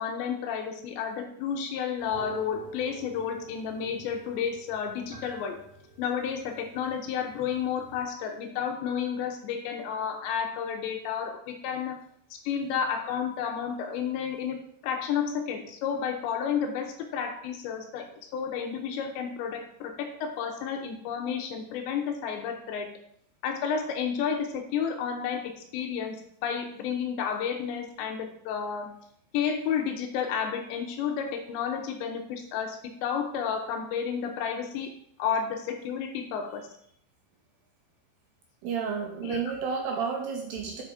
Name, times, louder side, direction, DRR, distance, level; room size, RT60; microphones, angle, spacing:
voice 1, 0.0-5.6 6.0-12.0 12.4-14.6 14.8-18.1 18.3-22.9 23.4-28.9 29.3-34.9 35.2-36.7 39.2-39.4, left 7 dB, 75° left, 3 dB, 2.9 m, -31 dB
sound 1, 2.0-8.0, right 4 dB, 10° left, 2.3 m, -46 dB
voice 2, 38.6-40.8, right 6 dB, 75° right, 2 dB, 2.5 m, -31 dB
8.7 x 5.2 x 5.0 m, 0.66 s
omnidirectional pair, 5.5 m